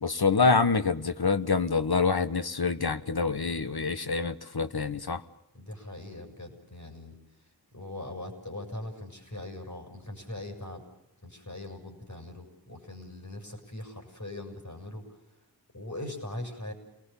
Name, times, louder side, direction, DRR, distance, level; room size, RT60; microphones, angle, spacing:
voice 1, 0.0-5.2, left 4 dB, 75° left, 1.3 m, -26 dB
voice 2, 5.5-7.2 7.7-10.8 11.2-15.0 15.7-16.7, left 1 dB, 50° left, 6.9 m, -41 dB
29.5 x 19.5 x 7.1 m
wide cardioid pair, 50°, 38 cm